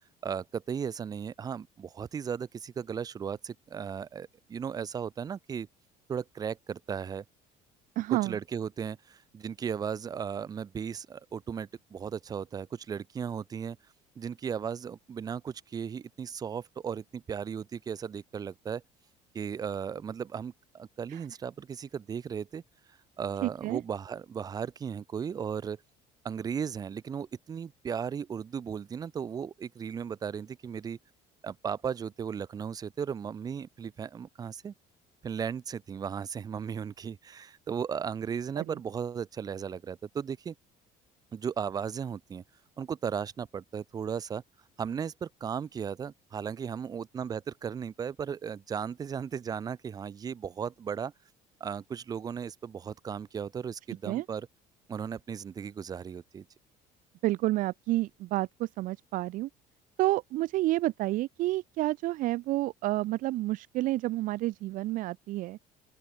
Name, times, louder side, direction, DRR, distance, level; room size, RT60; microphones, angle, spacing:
voice 1, 0.2-5.7 6.1-7.2 8.1-13.8 14.2-18.8 19.3-22.6 23.2-25.8 26.2-31.0 31.4-34.7 35.2-40.5 41.3-42.4 42.8-44.4 44.8-51.1 51.6-54.5 54.9-56.4, right 7 dB, 25° right, 1.0 m, -36 dB
voice 2, 8.0-8.4 21.1-21.2 23.4-23.8 38.6-38.7 54.1-54.2 57.2-59.5 60.0-65.6, right 17 dB, 55° right, 1.1 m, -29 dB
open air
cardioid pair, 170°, 16 cm